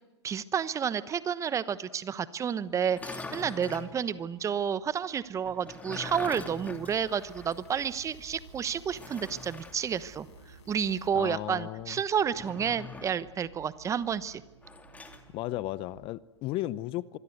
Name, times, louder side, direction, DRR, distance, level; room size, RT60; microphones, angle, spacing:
voice 1, 0.2-14.4, right 7 dB, 20° right, 16 dB, 1.0 m, -30 dB
sound 1, 2.8-3.9 5.4-7.7 8.0-8.1 8.9-9.8 12.3-13.3 14.6-15.2, left 3 dB, 10° left, 2.7 m, -43 dB
sound 2, 6.0-11.1, left 3 dB, 70° left, 7.3 m, -55 dB
sound 3, 6.0-16.1, right 7 dB, 80° right, 6.8 m, -56 dB
voice 2, 11.1-12.0 15.3-17.2, left 16 dB, 35° left, 19 dB, 0.8 m, -35 dB
25.5 x 22.0 x 8.1 m, 1.0 s
hypercardioid pair, 110°, 15 cm